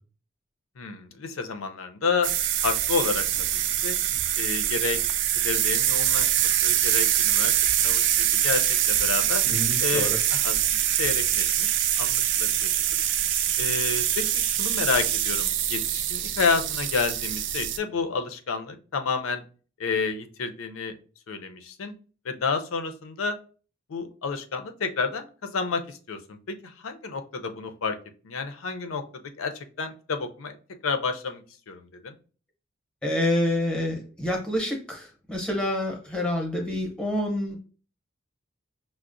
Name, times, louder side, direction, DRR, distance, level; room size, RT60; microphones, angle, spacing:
voice 1, 0.8-2.3 2.6-3.3 3.5-4.0 4.4-5.0 5.4-7.5 7.8-9.4 9.8-10.6 11.0-12.7 13.6-19.4 19.8-20.9 21.3-21.9 22.2-23.4 23.9-28.0 28.2-29.0 29.4-30.6 30.8-32.1, left 5 dB, 90° left, 7 dB, 0.5 m, -30 dB
sound 1, 2.2-17.8, right 11 dB, 60° right, 0.3 m, -24 dB
voice 2, 9.4-10.2 33.0-37.6, left 1 dB, 5° left, 1 dB, 0.7 m, -27 dB
5.7 x 2.0 x 2.5 m, 0.38 s
head